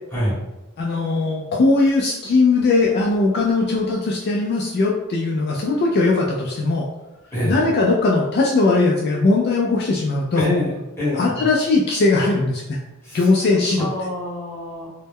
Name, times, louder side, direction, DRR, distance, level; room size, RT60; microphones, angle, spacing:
voice 1, 0.8-6.9 7.4-10.5 11.1-12.8 13.1-13.9, left 3 dB, 50° left, -2 dB, 0.3 m, -19 dB
voice 2, 7.3-7.6 10.3-11.5 13.0-13.3 13.8-14.9, left 1 dB, 10° left, -8 dB, 1.0 m, -25 dB
2.1 x 2.1 x 3.4 m, 1.0 s
head